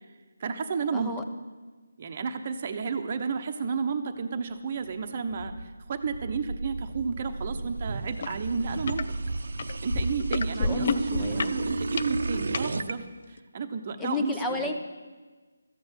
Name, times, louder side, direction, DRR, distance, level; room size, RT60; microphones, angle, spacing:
voice 1, 0.4-1.1 2.0-9.1 9.8-14.7, right 5 dB, 30° right, 5 dB, 1.0 m, -32 dB
voice 2, 0.9-1.2 10.6-11.4 14.0-14.7, left 3 dB, 5° left, 3 dB, 0.8 m, -31 dB
sound 1, 4.9-12.9, right 3 dB, 65° right, 0.8 m, -33 dB
sound 2, 8.2-8.3 8.7-9.0 9.6-12.7 13.4-13.5, left 5 dB, 40° left, 0.5 m, -30 dB
14.0 x 7.9 x 8.1 m, 1.3 s
figure-of-eight pair, 170°, 0 cm